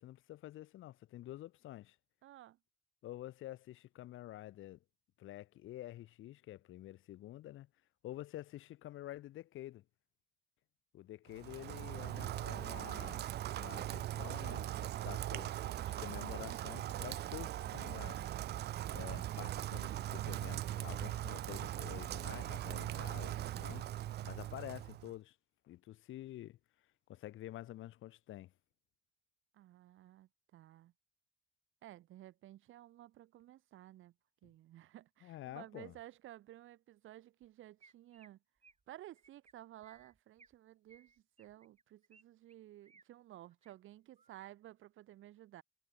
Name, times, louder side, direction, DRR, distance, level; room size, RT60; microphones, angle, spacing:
voice 1, 0.0-2.0 3.0-4.8 5.2-7.7 8.0-9.8 10.9-15.5 15.8-18.3 18.9-23.9 24.2-25.4 25.6-26.6 27.1-28.5 35.2-35.9, left 14 dB, 85° left, 2.8 m, -49 dB
voice 2, 2.2-2.6 29.5-30.9 31.8-34.1 34.4-38.4 38.9-41.1 41.4-45.6, right 14 dB, 85° right, 4.6 m, -55 dB
Rain, 11.3-25.1, right 13 dB, 55° right, 0.4 m, -40 dB
Chirp tweet, 37.4-37.5 37.8-38.3 38.6-38.8 39.2-39.5 39.8-40.6 40.9-42.2 42.5-43.0 43.5-43.7 44.2-44.5, right 4 dB, 35° right, 7.7 m, -65 dB
cardioid pair, 90°, 20 cm